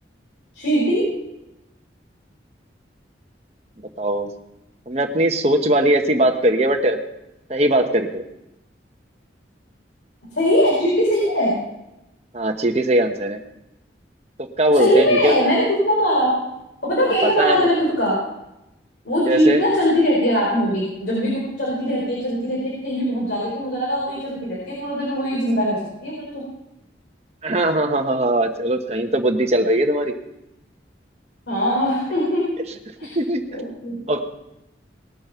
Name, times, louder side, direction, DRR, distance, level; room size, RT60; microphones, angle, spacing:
voice 1, 0.5-1.1 10.3-11.5 14.7-16.4 16.8-18.2 19.0-26.4 31.5-32.5 33.0-33.2 33.6-34.0, equal, 75° left, -5 dB, 5.1 m, -21 dB
voice 2, 4.0-4.3 4.9-7.0 7.5-8.2 12.3-13.4 14.4-15.5 17.2-17.7 19.3-19.6 27.4-30.1 33.1-33.6 34.1-34.2, right 1 dB, 35° right, 4 dB, 1.2 m, -20 dB
19.5 x 8.6 x 5.8 m, 0.92 s
head